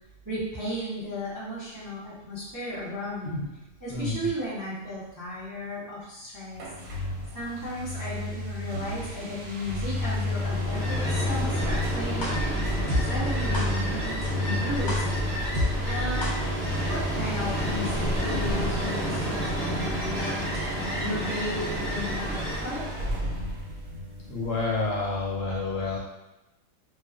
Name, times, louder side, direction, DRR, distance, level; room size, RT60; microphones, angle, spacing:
voice 1, 0.2-3.4 3.8-6.6 7.3-12.8 13.1-15.0 15.8-23.2, left 1 dB, 20° right, -10 dB, 0.5 m, -35 dB
sound 1, 6.5-25.0, left 1 dB, 90° right, 1.1 m, -32 dB
Ocean, 10.2-23.0, right 1 dB, 15° left, 0.8 m, -31 dB
sound 2, 12.2-12.3 12.9-13.0 13.5-13.6 14.2-14.3 14.9-15.0 15.5-15.7 16.2-16.3, left 1 dB, 45° left, 0.6 m, -27 dB
voice 2, 24.3-26.0, left 3 dB, 70° left, -4 dB, 0.9 m, -29 dB
2.4 x 2.3 x 2.3 m, 0.98 s
omnidirectional pair, 1.5 m